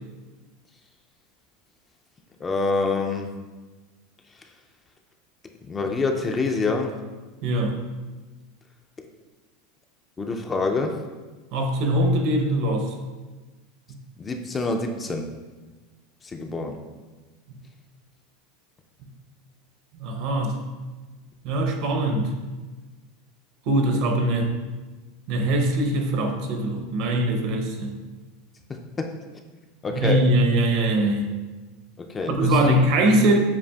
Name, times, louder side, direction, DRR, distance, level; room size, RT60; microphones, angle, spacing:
voice 1, 2.4-3.3 5.7-6.9 10.2-11.0 14.2-15.3 16.2-16.8 29.0-29.1 29.8-30.2 32.0-32.6, left 3 dB, 20° left, 3 dB, 0.3 m, -26 dB
voice 2, 7.4-7.8 11.5-12.9 13.9-14.0 20.0-20.6 21.4-22.3 23.7-24.5 25.3-28.0 29.9-31.3 32.3-33.4, right 1 dB, 55° right, 4 dB, 0.6 m, -22 dB
7.2 x 2.4 x 2.3 m, 1.3 s
supercardioid pair, 135°, 0 cm